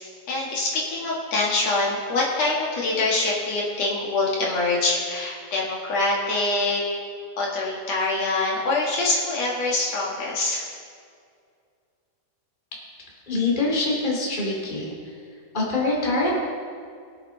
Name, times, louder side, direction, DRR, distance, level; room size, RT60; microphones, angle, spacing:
voice 1, 0.3-6.8 7.4-10.6, left 2 dB, 65° left, -3 dB, 2.7 m, -24 dB
voice 2, 13.3-15.1 15.5-16.3, left 2 dB, 15° left, -3 dB, 2.5 m, -24 dB
22.5 x 8.2 x 3.8 m, 2.3 s
omnidirectional pair, 3.4 m